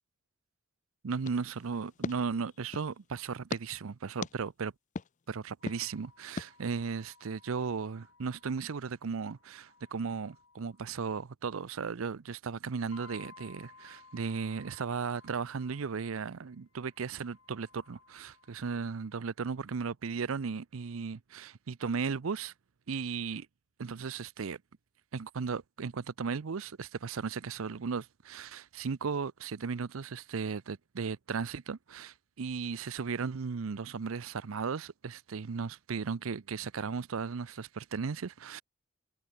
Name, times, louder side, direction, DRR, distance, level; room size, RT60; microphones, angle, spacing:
voice 1, 1.0-4.7 5.3-22.5 22.9-23.5 23.8-24.6 25.1-38.6, right 5 dB, 75° right, 0.6 m, -36 dB
sound 1, 1.2-3.0 3.5-3.6 4.2-4.3 5.0-5.1 5.7-5.8 6.4-6.5, left 4 dB, 35° left, 0.6 m, -39 dB
sound 2, 5.6-11.0 12.9-18.9, left 4 dB, 70° left, 4.0 m, -59 dB
head